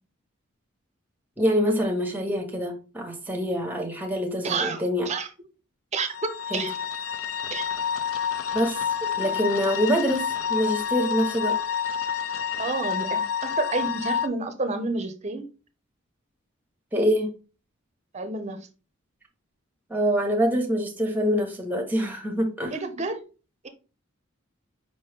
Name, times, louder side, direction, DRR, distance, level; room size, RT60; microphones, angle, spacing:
voice 1, 1.4-5.1 6.5-6.7 8.5-11.5 16.9-17.3 19.9-22.8, equal, 10° right, 3 dB, 0.9 m, -25 dB
voice 2, 4.4-4.8 5.1-5.3 5.9-6.7 7.5-7.6 12.6-15.5 18.1-18.7 22.7-23.2, right 3 dB, 35° right, 8 dB, 0.6 m, -29 dB
sound 1, 6.1-14.3, left 7 dB, 80° left, 0.5 m, -29 dB
5.3 x 3.0 x 3.3 m, 0.33 s
head